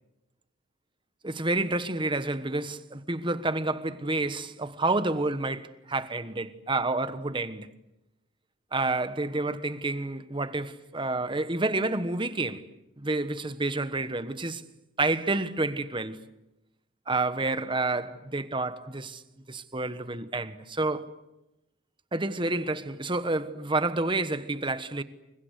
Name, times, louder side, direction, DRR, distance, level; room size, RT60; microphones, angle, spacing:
voice 1, 1.2-7.7 8.7-12.7 13.0-14.6 15.0-16.2 17.1-19.2 19.5-21.1 22.1-25.0, right 2 dB, 25° right, 1.2 m, -29 dB
29.5 x 23.0 x 8.2 m
head